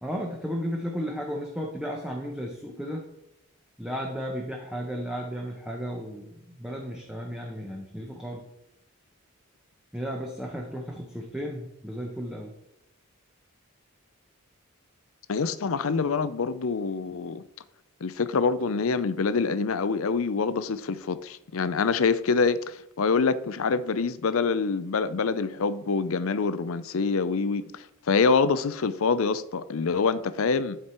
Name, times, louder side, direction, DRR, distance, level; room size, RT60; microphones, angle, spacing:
voice 1, 0.0-3.0 3.8-8.5 9.9-12.5, equal, 5° right, 0.9 m, -34 dB
voice 2, 15.3-17.4 18.0-30.8, left 4 dB, 70° left, 0.5 m, -26 dB
12.0 x 4.8 x 4.4 m
head